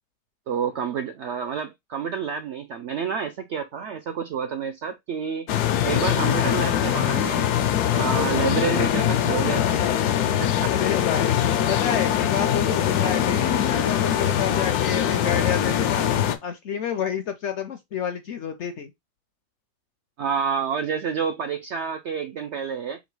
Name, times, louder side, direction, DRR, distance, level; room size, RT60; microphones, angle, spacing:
voice 1, 0.5-5.5 5.8-7.4 7.9-10.1 10.4-10.7 20.2-23.0, right 7 dB, 70° right, 0.6 m, -29 dB
sound 1, 5.5-16.4, left 10 dB, 80° left, 1.2 m, -22 dB
voice 2, 10.6-11.4 11.7-16.1 16.4-18.9, left 8 dB, 65° left, 0.7 m, -29 dB
3.9 x 2.9 x 4.6 m
omnidirectional pair, 1.7 m